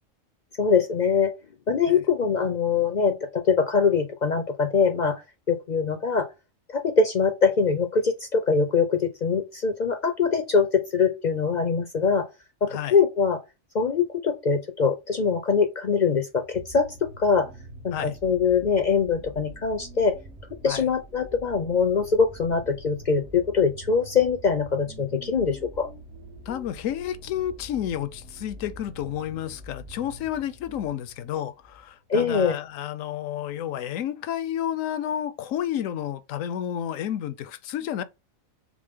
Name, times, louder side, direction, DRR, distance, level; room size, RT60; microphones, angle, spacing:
voice 1, 0.6-1.3 1.7-5.2 5.5-6.3 6.7-12.3 12.6-13.4 13.7-17.5 17.8-20.2 20.6-25.9 32.1-32.6, left 5 dB, 55° left, 0.5 m, -23 dB
sound 1, 16.3-31.9 32.7-32.8, right 1 dB, 55° right, 1.3 m, -45 dB
voice 2, 26.5-38.0, left 10 dB, 80° left, 1.0 m, -31 dB
6.1 x 2.0 x 3.5 m
omnidirectional pair, 1.4 m